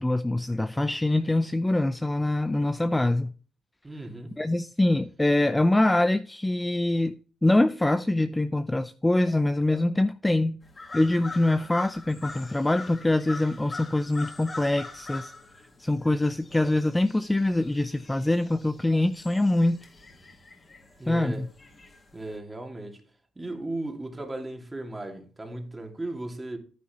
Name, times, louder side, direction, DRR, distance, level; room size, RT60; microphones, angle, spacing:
voice 1, 0.0-3.3 4.4-7.1 7.4-10.6 10.9-15.3 15.8-19.8 21.1-21.5, left 1 dB, 10° left, 0.5 m, -24 dB
voice 2, 3.8-4.4 21.0-21.5 22.1-23.0 23.4-26.6, right 2 dB, 20° right, 2.3 m, -36 dB
sound 1, 10.6-22.4, left 3 dB, 30° left, 2.2 m, -44 dB
9.8 x 9.3 x 3.0 m
cardioid pair, 90°, 0 cm